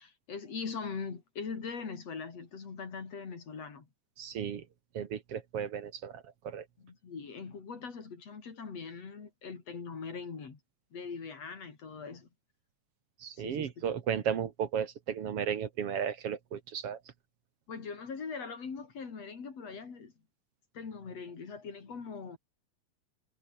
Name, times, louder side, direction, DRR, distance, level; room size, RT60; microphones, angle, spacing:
voice 1, 0.0-3.9 6.8-10.6 10.9-12.3 13.3-13.8 17.7-20.1 20.7-22.4, left 5 dB, 50° left, 4.4 m, -41 dB
voice 2, 4.2-4.6 4.9-6.7 13.2-17.0, right 8 dB, 50° right, 2.2 m, -34 dB
omnidirectional pair, 3.8 m